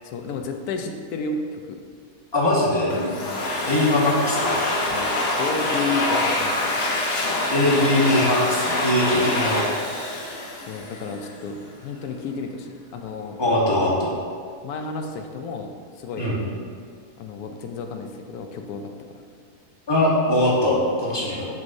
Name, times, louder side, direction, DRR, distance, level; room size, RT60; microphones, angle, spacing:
voice 1, 0.0-1.8 3.2-3.4 4.9-5.1 5.4-6.5 9.1-9.3 10.6-13.4 14.6-16.3 17.2-19.2, left 4 dB, 85° left, 5 dB, 1.1 m, -32 dB
voice 2, 2.3-3.0 3.7-4.6 7.5-9.6 13.4-14.1 16.2-16.4 19.9-21.5, left 1 dB, 20° left, -5 dB, 1.0 m, -21 dB
Domestic sounds home sounds, 2.9-11.3, left 1 dB, 50° left, 0.9 m, -25 dB
7.3 x 6.2 x 2.6 m, 2.1 s
omnidirectional pair, 1.6 m